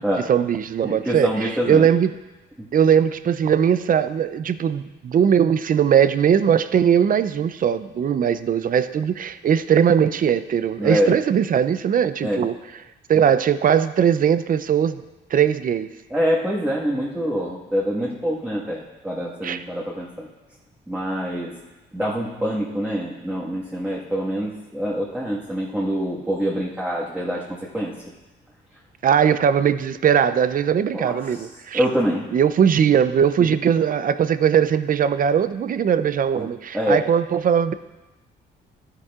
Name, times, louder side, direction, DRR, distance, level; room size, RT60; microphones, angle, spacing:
voice 1, 0.3-2.2 2.7-12.5 13.1-15.0 15.3-15.9 19.4-19.6 29.0-31.9 32.3-37.7, right 8 dB, 45° right, 13 dB, 0.5 m, -19 dB
voice 2, 0.8-1.9 2.6-2.7 10.8-11.1 12.2-12.4 16.1-20.3 20.9-21.5 21.9-28.0 30.9-31.5 31.7-32.2 36.3-37.0, equal, 10° right, -6 dB, 1.6 m, -25 dB
12.5 x 10.0 x 2.4 m, 1.1 s
cardioid pair, 90°, 20 cm